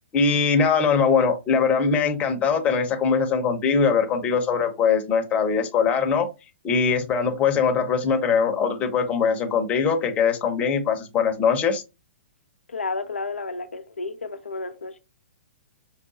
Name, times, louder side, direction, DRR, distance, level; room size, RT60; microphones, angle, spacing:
voice 1, 0.1-6.3 6.6-11.8, left 5 dB, 20° left, 0.8 m, -21 dB
voice 2, 12.7-15.0, left 3 dB, 85° left, 0.5 m, -31 dB
4.8 x 2.2 x 2.7 m
figure-of-eight pair, 120°, 6 cm